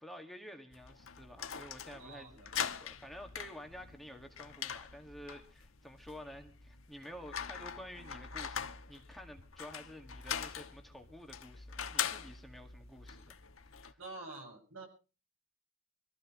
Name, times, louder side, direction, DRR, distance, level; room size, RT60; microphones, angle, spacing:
voice 1, 0.0-13.4 13.7-14.0, equal, ahead, 2.0 m, -51 dB
sound 1, 0.7-13.9, left 8 dB, 80° left, 1.3 m, -43 dB
voice 2, 2.0-2.5 14.0-14.9, right 2 dB, 90° right, 7.1 m, -47 dB
25.5 x 14.5 x 3.2 m
head